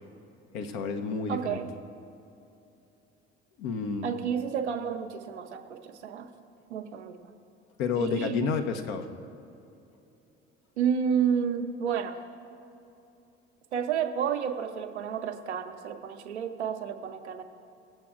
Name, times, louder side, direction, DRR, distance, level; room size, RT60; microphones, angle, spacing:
voice 1, 0.5-1.6 3.6-4.1 7.8-9.1, left 5 dB, 65° left, 6 dB, 0.9 m, -30 dB
voice 2, 1.3-1.7 4.0-6.3 6.7-7.2 8.0-8.5 10.8-12.2 13.7-17.4, right 7 dB, 80° right, 7 dB, 0.7 m, -30 dB
20.0 x 7.6 x 2.4 m, 2.8 s
figure-of-eight pair, 60°, 34 cm